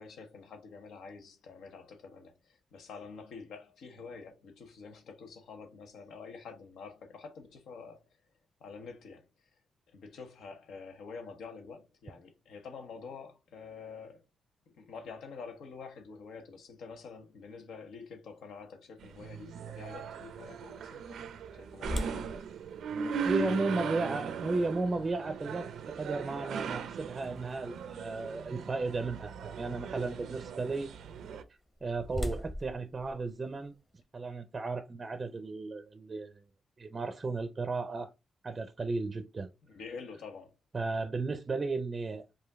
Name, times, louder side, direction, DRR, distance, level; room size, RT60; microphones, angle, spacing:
voice 1, 0.0-8.1 8.6-9.3 9.9-14.2 14.8-21.3 21.6-22.3 39.7-40.5, left 5 dB, 85° left, 1.0 m, -47 dB
sound 1, 19.0-31.4, right 6 dB, 80° right, 0.5 m, -39 dB
sound 2, 21.8-27.8 28.3-28.4 29.0-29.3 31.3-34.0, left 1 dB, 20° left, 0.8 m, -42 dB
voice 2, 23.2-25.7 26.0-30.9 31.8-33.7 34.1-36.4 36.8-38.1 38.4-39.5 40.7-42.2, right 3 dB, 30° right, 0.5 m, -34 dB
4.9 x 2.6 x 3.5 m
wide cardioid pair, 140°, 0 cm